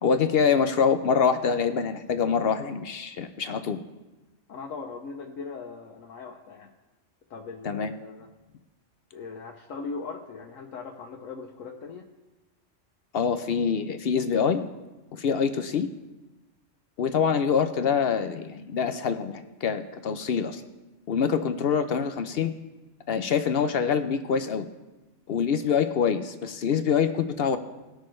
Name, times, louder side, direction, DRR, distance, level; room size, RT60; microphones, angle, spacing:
voice 1, 0.0-3.8 7.6-7.9 13.1-14.7 15.1-15.9 17.0-20.6 21.1-22.5 23.1-24.7 25.3-27.6, left 6 dB, 60° left, 9 dB, 0.7 m, -25 dB
voice 2, 4.5-6.7 7.3-8.3 9.1-12.1, left 4 dB, 85° left, 0 dB, 1.2 m, -39 dB
19.0 x 6.4 x 3.2 m, 1.1 s
omnidirectional pair, 1.3 m